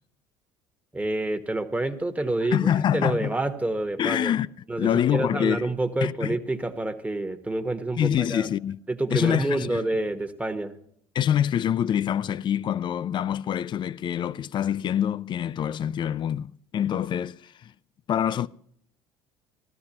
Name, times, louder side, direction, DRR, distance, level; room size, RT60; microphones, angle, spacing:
voice 1, 0.9-4.3 4.7-8.5 8.9-10.7, right 2 dB, 10° right, 1.2 m, -28 dB
voice 2, 2.5-3.3 4.0-4.5 4.8-5.7 6.0-6.4 8.0-8.8 9.1-9.8 11.1-17.7 18.1-18.5, left 10 dB, 40° left, 0.4 m, -25 dB
15.0 x 13.0 x 2.9 m
hypercardioid pair, 70°, 12 cm